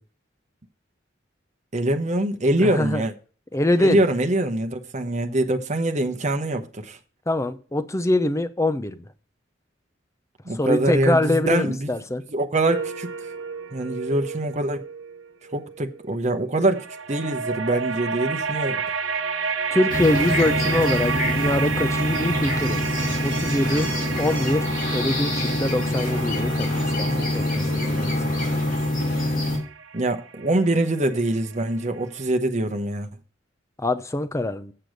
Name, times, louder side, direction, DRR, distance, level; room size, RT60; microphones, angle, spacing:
voice 1, 1.7-3.1 3.8-7.0 10.4-11.9 12.3-13.1 13.7-14.8 15.5-18.8 29.9-33.1, right 1 dB, 35° right, 1.0 m, -24 dB
voice 2, 2.6-3.0 3.5-4.0 7.3-9.1 10.5-12.2 19.7-22.9 23.2-23.9 24.2-28.4 33.8-34.7, left 1 dB, 15° left, 0.6 m, -24 dB
sound 1, 12.7-16.0 16.7-31.6, right 6 dB, 90° right, 0.8 m, -31 dB
sound 2, 19.9-29.6, left 1 dB, 45° left, 3.1 m, -25 dB
7.7 x 6.8 x 6.4 m
head